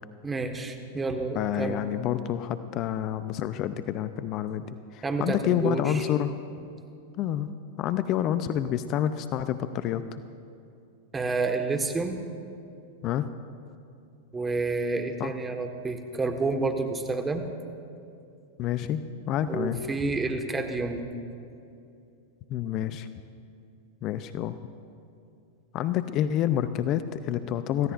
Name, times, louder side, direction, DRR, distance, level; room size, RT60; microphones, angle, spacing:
voice 1, 0.2-1.8 5.0-6.0 11.1-12.2 14.3-17.4 19.5-21.0, right 3 dB, 15° right, 5 dB, 1.4 m, -29 dB
voice 2, 1.3-4.7 4.9-6.3 7.2-7.5 7.8-10.0 13.0-13.3 15.2-15.3 18.6-19.8 22.5-23.1 24.0-24.6 25.7-27.9, left 11 dB, 45° left, 12 dB, 0.6 m, -28 dB
26.0 x 15.5 x 2.5 m, 2.6 s
hypercardioid pair, 100°, 0 cm